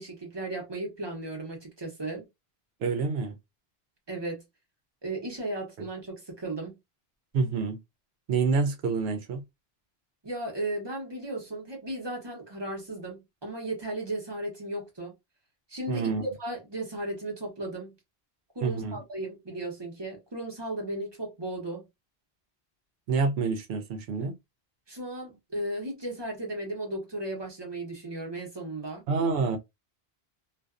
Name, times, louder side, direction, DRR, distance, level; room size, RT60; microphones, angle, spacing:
voice 1, 0.0-2.3 4.1-4.4 5.0-6.7 10.2-15.1 15.7-16.1 16.4-18.0 18.5-21.8 24.9-29.0, right 1 dB, 25° right, 0.9 m, -35 dB
voice 2, 2.8-3.4 7.3-7.8 8.3-9.4 15.9-16.2 18.6-19.0 23.1-24.3 29.1-29.6, right 4 dB, 85° right, 0.8 m, -27 dB
2.5 x 2.2 x 2.4 m
omnidirectional pair, 1.0 m